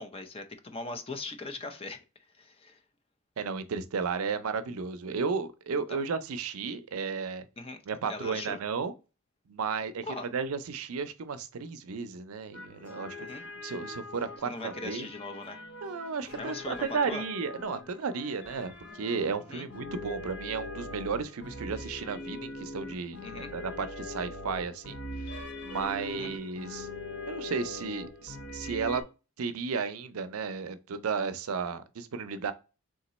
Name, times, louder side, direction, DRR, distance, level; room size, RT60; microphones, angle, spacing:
voice 1, 0.0-2.8 5.9-6.0 7.6-7.8 8.1-8.6 10.1-10.3 13.2-13.4 14.4-15.6 16.4-17.3 19.5-19.7 23.2-23.5 26.1-26.3, left 3 dB, 25° left, 0.6 m, -40 dB
voice 2, 3.4-7.5 7.9-8.9 9.5-10.0 10.3-13.3 13.6-15.1 15.8-25.0 25.3-26.9 27.3-29.0 29.4-32.5, right 5 dB, 75° right, 0.5 m, -34 dB
sound 1, 12.5-29.0, left 2 dB, 50° left, 0.9 m, -42 dB
3.7 x 2.9 x 4.0 m
head